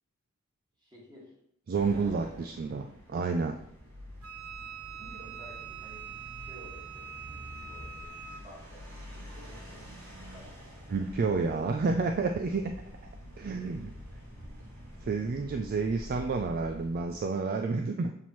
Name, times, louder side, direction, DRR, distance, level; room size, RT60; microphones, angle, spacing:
voice 1, 0.8-1.3 1.9-2.4 4.9-6.0 6.3-8.9 9.1-9.8 10.1-10.7 12.5-12.8 13.3-13.5, right 1 dB, 20° right, -5 dB, 2.0 m, -53 dB
voice 2, 1.7-3.6 10.9-12.6 13.4-13.9 15.0-18.1, right 4 dB, 45° right, 5 dB, 0.3 m, -30 dB
sound 1, 1.7-17.2, equal, 65° right, 2.1 m, -47 dB
Wind instrument woodwind instrument, 4.2-8.5, right 7 dB, 90° right, 0.8 m, -44 dB
7.1 x 4.3 x 3.1 m, 0.74 s
head